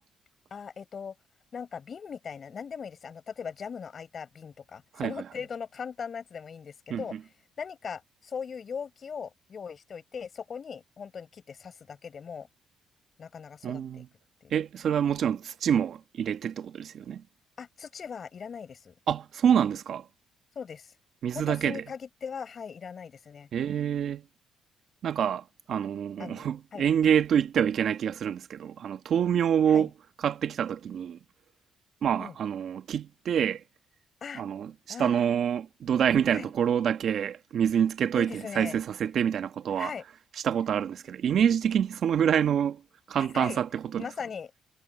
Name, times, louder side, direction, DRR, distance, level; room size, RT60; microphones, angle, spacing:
voice 1, 0.5-1.1 1.5-7.2 7.6-12.5 13.2-14.0 14.4-14.5 17.6-18.9 20.6-20.9 21.3-23.5 26.2-26.9 29.7-29.9 32.2-32.4 34.2-34.4 34.9-35.3 36.3-36.5 38.1-38.8 39.7-40.0 43.2-43.6 44.0-44.5, left 6 dB, 45° left, 5.7 m, -39 dB
voice 2, 4.9-5.2 6.9-7.2 13.6-14.1 14.5-17.2 19.1-20.0 21.2-21.8 23.5-24.2 25.0-29.9 30.2-31.2 32.0-33.6 34.3-39.9 40.4-42.8 43.1-44.1, right 8 dB, 65° right, 1.4 m, -27 dB
cardioid pair, 90°, 0 cm